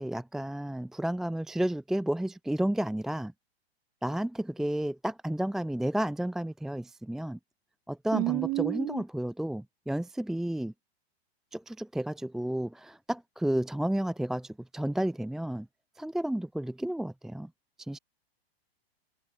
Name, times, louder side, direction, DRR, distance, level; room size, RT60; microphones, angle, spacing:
voice 1, 0.0-3.3 4.0-7.4 7.9-10.7 11.5-15.7 16.0-17.5 17.9-18.0, right 1 dB, ahead, 0.9 m, -32 dB
voice 2, 8.1-9.0, right 22 dB, 25° right, 2.3 m, -29 dB
hypercardioid pair, 160°, 32 cm